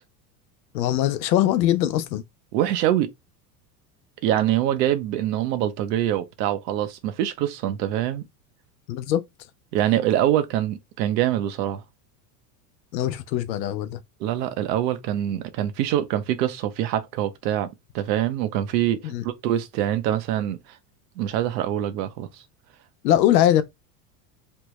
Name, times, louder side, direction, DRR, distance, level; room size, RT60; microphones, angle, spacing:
voice 1, 0.7-2.2 8.9-9.2 12.9-14.0 19.0-19.2 23.0-23.6, left 12 dB, 90° left, 0.7 m, -21 dB
voice 2, 2.5-3.1 4.2-8.2 9.7-11.8 14.2-17.7 17.9-20.8 21.2-22.4, right 12 dB, 75° right, 0.8 m, -24 dB
3.2 x 2.3 x 3.1 m
supercardioid pair, 110°, 50 cm